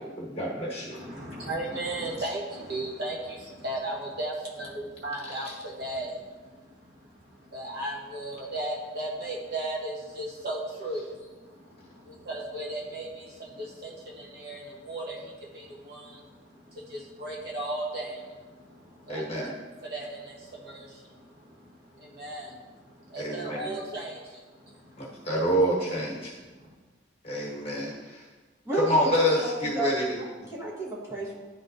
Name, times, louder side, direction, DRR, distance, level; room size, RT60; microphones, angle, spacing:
voice 1, 0.0-1.0 5.2-5.3 19.1-19.5 23.2-23.6 25.0-26.4 27.2-28.2 28.7-30.0 30.4-30.5, equal, 30° left, -4 dB, 1.5 m, -27 dB
voice 2, 0.9-19.5 19.8-25.2 26.5-26.7, right 1 dB, 55° right, -3 dB, 1.1 m, -37 dB
voice 3, 29.4-29.9 30.2-31.4, right 2 dB, 15° right, -5 dB, 1.2 m, -32 dB
10.5 x 3.9 x 2.6 m, 1.3 s
head